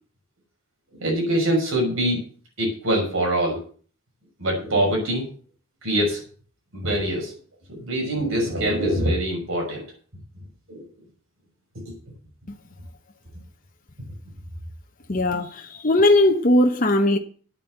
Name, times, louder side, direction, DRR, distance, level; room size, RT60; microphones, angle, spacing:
voice 1, 1.0-2.2 2.6-3.6 4.4-5.2 5.8-6.2 6.7-7.3 7.7-9.8 10.7-10.8, right 1 dB, 70° right, 6.2 m, -23 dB
voice 2, 15.1-17.2, left 1 dB, 40° left, 1.0 m, -19 dB
9.2 x 8.3 x 7.9 m
head